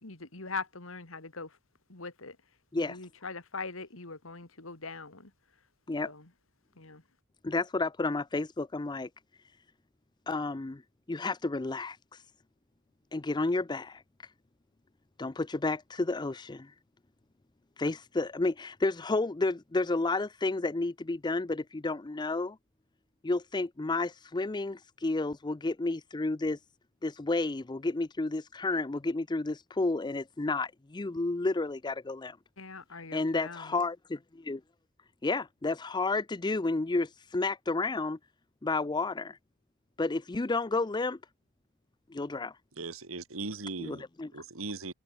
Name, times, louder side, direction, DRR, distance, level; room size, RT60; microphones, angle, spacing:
voice 1, 0.0-1.6 1.9-2.4 2.8-5.3 6.0-6.3 6.8-7.0 32.6-33.8, left 4 dB, 75° left, 2.8 m, -41 dB
voice 2, 7.4-9.1 10.3-10.8 11.1-12.0 13.1-14.0 15.2-16.7 17.8-22.6 23.2-26.6 27.0-32.4 33.1-34.6 35.2-38.2 38.6-39.4 40.0-41.2 42.1-42.5 43.8-44.3, left 3 dB, 20° left, 0.5 m, -31 dB
voice 3, 42.7-44.0 44.3-44.9, right 3 dB, 85° right, 2.6 m, -38 dB
head